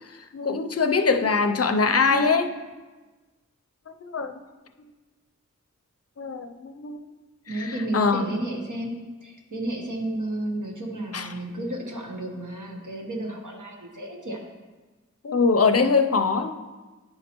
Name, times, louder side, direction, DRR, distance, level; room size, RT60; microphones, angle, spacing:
voice 1, 0.3-2.5 4.0-4.3 6.2-7.0 7.5-8.2 11.1-11.3 15.2-16.5, left 4 dB, 55° left, 7 dB, 0.5 m, -22 dB
voice 2, 7.5-14.4, right 1 dB, 90° right, 0 dB, 1.1 m, -32 dB
9.7 x 5.2 x 2.9 m, 1.3 s
wide cardioid pair, 50°, 30 cm